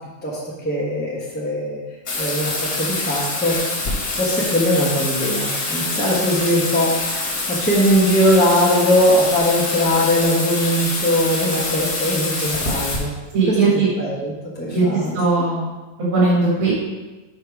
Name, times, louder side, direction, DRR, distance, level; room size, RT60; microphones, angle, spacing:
voice 1, 0.6-1.8 2.2-3.6 4.2-13.1 13.5-13.7 14.0-15.4, equal, 10° left, -6 dB, 0.5 m, -20 dB
Bathtub (filling or washing), 2.1-13.0, left 2 dB, 55° left, 1.9 m, -25 dB
voice 2, 13.3-13.9 14.7-14.8 15.1-15.7 16.1-16.7, right 3 dB, 85° right, -6 dB, 2.4 m, -18 dB
5.6 x 5.2 x 4.7 m, 1.2 s
omnidirectional pair, 2.2 m